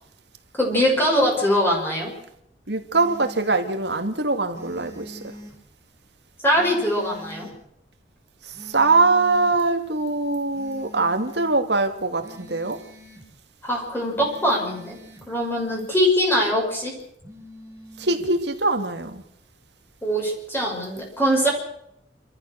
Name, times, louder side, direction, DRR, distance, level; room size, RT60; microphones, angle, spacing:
voice 1, 0.6-2.1 6.4-7.5 13.6-15.0 15.3-16.9 20.0-21.5, equal, 15° left, 6.1 m, -22 dB
voice 2, 2.7-5.2 8.7-12.8 18.0-19.2, right 3 dB, 65° right, 2.5 m, -22 dB
sound 1, 2.9-3.5 4.5-5.5 6.5-7.6 8.5-9.6 10.5-11.6 12.2-13.2 14.2-15.2 17.2-18.3, left 1 dB, 15° right, 5.4 m, -43 dB
29.0 x 13.5 x 6.6 m
head